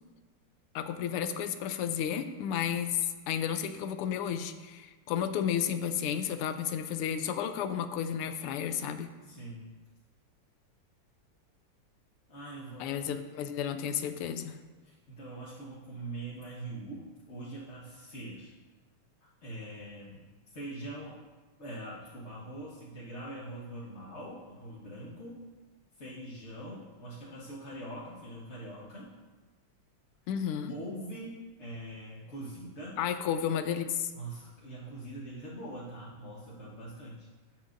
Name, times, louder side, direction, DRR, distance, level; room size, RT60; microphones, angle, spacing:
voice 1, 0.7-9.1 12.8-14.6 30.3-30.7 33.0-34.1, left 8 dB, 85° left, 9 dB, 1.5 m, -32 dB
voice 2, 9.2-9.7 12.3-13.0 14.8-18.5 19.4-20.3 20.5-21.2 21.6-25.4 26.0-29.1 30.7-33.0 34.1-37.3, right 1 dB, 40° left, -7 dB, 1.2 m, -43 dB
13.0 x 7.7 x 2.6 m, 1.3 s
omnidirectional pair, 2.4 m